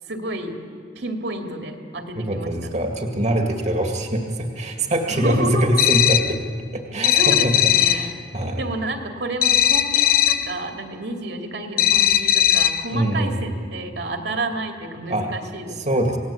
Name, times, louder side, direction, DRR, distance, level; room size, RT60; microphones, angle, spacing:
voice 1, 0.1-0.6 1.0-2.8 5.1-5.8 7.1-8.1 8.6-15.8, right 1 dB, 65° right, 3 dB, 2.6 m, -30 dB
voice 2, 2.2-6.4 6.7-7.5 7.9-8.6 12.1-12.2 12.9-13.6 15.1-15.3 15.7-16.2, right 1 dB, 40° right, 3 dB, 2.1 m, -23 dB
sound 1, 5.8-6.4 7.0-8.1 9.4-10.5 11.8-12.9, left 11 dB, 55° left, 0.8 m, -18 dB
28.0 x 19.0 x 8.6 m, 2.1 s
head